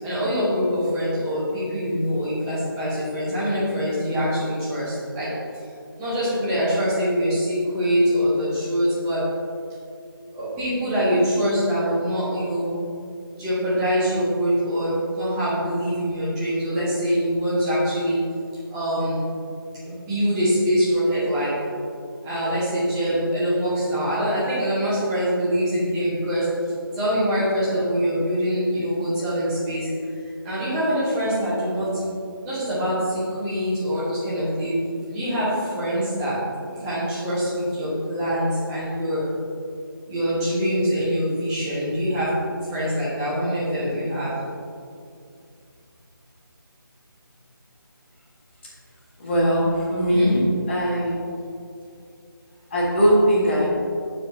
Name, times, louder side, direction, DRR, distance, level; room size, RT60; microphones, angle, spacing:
voice 1, 0.0-5.3 6.0-9.2 10.3-12.7 13.4-18.2 18.7-19.2 19.8-21.5 22.2-26.5 26.9-29.9 30.4-31.9 32.4-34.8 35.1-35.5 35.8-36.4 36.8-39.2 40.1-42.3 42.7-44.3 50.1-50.4, equal, 10° right, -11 dB, 1.8 m, -24 dB
voice 2, 49.2-50.4 50.7-51.2 52.7-53.7, equal, 30° left, -6 dB, 1.7 m, -20 dB
11.0 x 4.7 x 2.9 m, 2.4 s
figure-of-eight pair, 160°, 12 cm